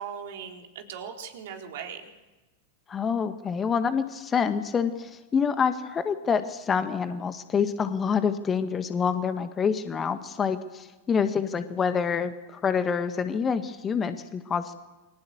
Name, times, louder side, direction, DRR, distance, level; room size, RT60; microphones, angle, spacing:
voice 1, 0.0-2.1, right 7 dB, 55° right, 3 dB, 4.2 m, -39 dB
voice 2, 2.9-14.7, left 6 dB, 20° left, 10 dB, 1.7 m, -27 dB
29.0 x 23.5 x 8.0 m, 1.1 s
figure-of-eight pair, 90°, 0 cm